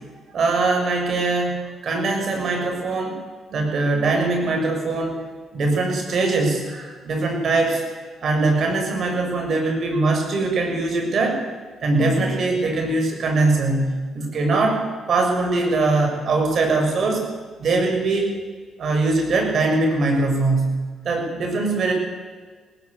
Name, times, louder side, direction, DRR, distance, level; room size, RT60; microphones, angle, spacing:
voice 1, 0.3-3.2 3.5-5.2 5.5-7.8 8.2-11.4 11.8-14.8 15.1-17.3 17.6-18.3 18.8-20.8 21.0-21.9, right 3 dB, 55° right, 3 dB, 7.2 m, -21 dB
20.5 x 18.5 x 8.5 m, 1.5 s
cardioid pair, 90°, 0 cm